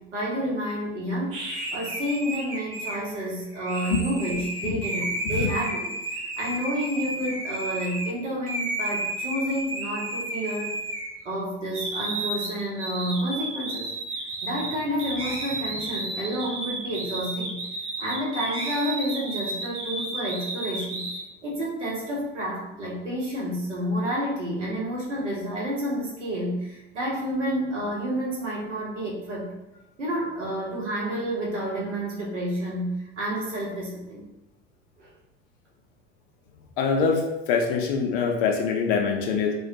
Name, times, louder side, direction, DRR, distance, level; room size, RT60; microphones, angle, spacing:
voice 1, 0.1-1.4 1.7-10.7 11.2-13.9 14.4-17.6 18.0-21.0 21.4-29.5 30.0-34.2 35.0-35.1, equal, 80° right, -4 dB, 0.8 m, -30 dB
sound 1, 1.3-8.1 8.5-11.4 11.7-21.2, right 2 dB, 40° right, 0.8 m, -32 dB
voice 2, 36.8-39.5, left 5 dB, 50° left, 2 dB, 0.5 m, -24 dB
2.1 x 2.1 x 2.7 m, 0.97 s
figure-of-eight pair, 70°, 35 cm